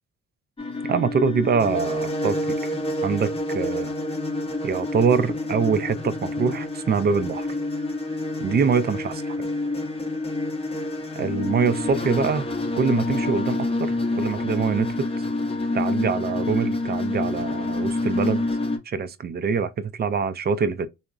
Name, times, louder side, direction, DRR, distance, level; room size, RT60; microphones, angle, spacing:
sound 1, 0.6-18.8, left 2 dB, 20° left, 0.6 m, -27 dB
voice 1, 0.8-2.7 3.0-3.9 4.6-7.5 8.4-9.4 11.2-12.5 12.8-15.1 15.7-18.4 18.9-20.9, right 5 dB, 35° right, 0.4 m, -24 dB
3.6 x 2.0 x 2.3 m
cardioid pair, 90°, 30 cm